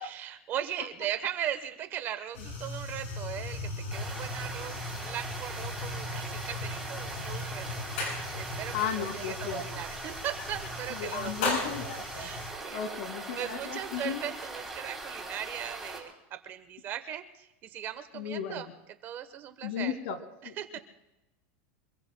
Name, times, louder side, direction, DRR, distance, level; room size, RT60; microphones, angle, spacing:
voice 1, 0.0-7.8 8.3-11.7 12.1-13.0 13.4-18.7 19.0-19.9 20.4-20.8, right 10 dB, 30° right, 10 dB, 1.0 m, -38 dB
sound 1, 2.3-12.5, left 2 dB, 85° left, 7.7 m, -37 dB
sound 2, 3.9-16.0, right 2 dB, ahead, 3.3 m, -41 dB
voice 2, 8.7-9.7 10.9-12.3 12.7-14.2 18.1-18.7 19.6-20.2 20.4-20.8, left 8 dB, 65° left, 8 dB, 2.2 m, -35 dB
26.0 x 23.5 x 2.2 m, 0.94 s
supercardioid pair, 165°, 7 cm